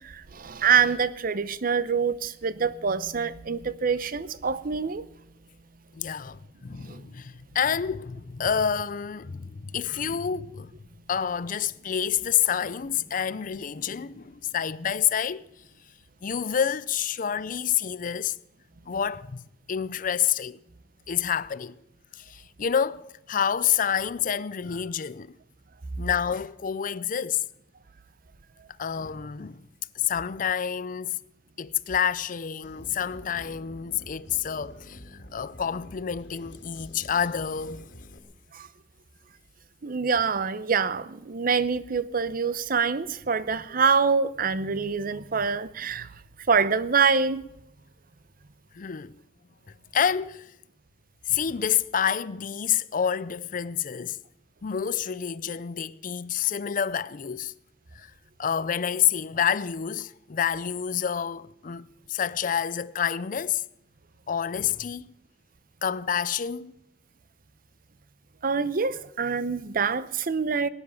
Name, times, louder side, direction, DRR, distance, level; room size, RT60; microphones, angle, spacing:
voice 1, 0.4-5.0 6.9-7.0 39.8-46.1 46.5-47.4 68.4-70.7, right 5 dB, 50° right, 0.7 m, -25 dB
voice 2, 5.9-10.7 11.1-15.4 16.2-18.3 18.9-20.6 21.1-21.8 22.1-25.3 26.0-27.4 28.8-29.6 29.9-31.2 31.6-37.9 48.7-49.2 49.9-50.5 51.3-54.2 54.6-57.5 57.9-58.1 58.4-63.6 64.3-65.1 65.8-66.7, left 8 dB, 50° left, 0.5 m, -28 dB
sound 1, 32.6-38.2, equal, 80° left, 2.0 m, -47 dB
19.0 x 9.9 x 6.9 m
head